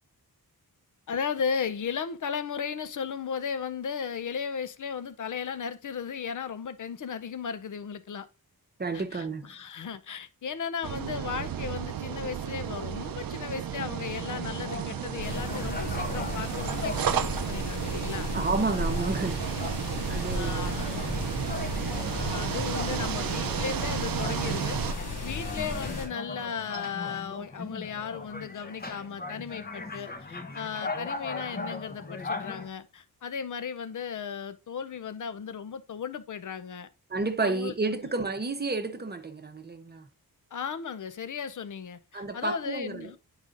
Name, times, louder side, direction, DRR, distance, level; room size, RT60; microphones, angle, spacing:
voice 1, 1.1-8.3 8.9-18.3 20.1-21.3 21.7-24.8 25.2-36.9 37.4-37.7 40.5-43.2, left 6 dB, 55° left, 0.6 m, -36 dB
voice 2, 8.8-9.5 18.3-19.4 20.1-20.7 37.1-40.1 42.1-43.2, right 3 dB, 25° right, 0.8 m, -31 dB
sound 1, 10.8-24.9, right 9 dB, 65° right, 0.5 m, -33 dB
sound 2, 13.9-32.7, left 3 dB, 25° left, 0.8 m, -40 dB
sound 3, 15.2-26.1, left 2 dB, 90° left, 2.4 m, -35 dB
9.7 x 4.9 x 2.5 m
wide cardioid pair, 110°, 38 cm